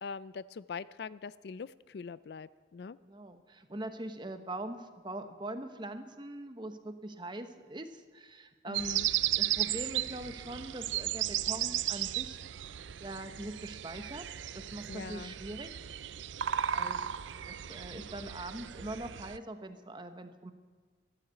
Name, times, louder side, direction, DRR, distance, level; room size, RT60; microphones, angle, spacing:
voice 1, 0.0-3.0 8.6-9.1 14.9-15.3, left 5 dB, 60° left, 17 dB, 0.4 m, -43 dB
voice 2, 3.0-12.4 13.0-14.3 14.5-15.7 16.7-17.0 17.5-20.5, right 1 dB, 25° right, 8 dB, 1.0 m, -42 dB
sound 1, 8.7-19.4, right 12 dB, 80° right, 0.5 m, -35 dB
14.0 x 11.5 x 8.3 m, 1.5 s
head